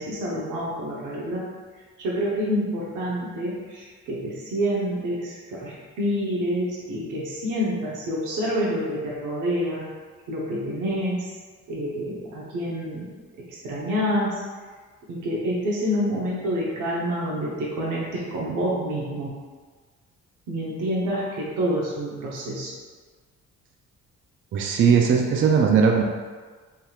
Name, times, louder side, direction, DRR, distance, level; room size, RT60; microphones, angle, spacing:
voice 1, 0.0-1.4 2.0-9.8 10.3-11.3 11.7-13.1 13.5-14.3 15.1-19.4 20.5-22.7, equal, 85° right, -5 dB, 0.9 m, -27 dB
voice 2, 24.5-26.0, right 6 dB, 40° right, 1 dB, 0.4 m, -19 dB
3.5 x 2.9 x 2.3 m, 1.4 s
cardioid pair, 90°, 30 cm